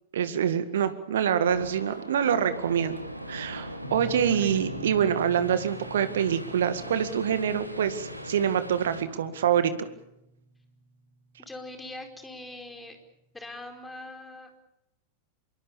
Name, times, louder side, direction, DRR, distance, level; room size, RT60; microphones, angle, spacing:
voice 1, 0.1-3.0 3.3-9.9, right 8 dB, 60° right, 11 dB, 1.9 m, -26 dB
sound 1, 1.4-9.0, equal, 85° right, 2.2 m, -39 dB
sound 2, 3.8-12.5, equal, 45° left, 5.1 m, -48 dB
voice 2, 4.3-4.7 11.4-13.0 13.3-14.6, left 2 dB, 10° left, 4 dB, 4.8 m, -42 dB
25.5 x 23.5 x 7.2 m, 0.84 s
figure-of-eight pair, 90°, 0 cm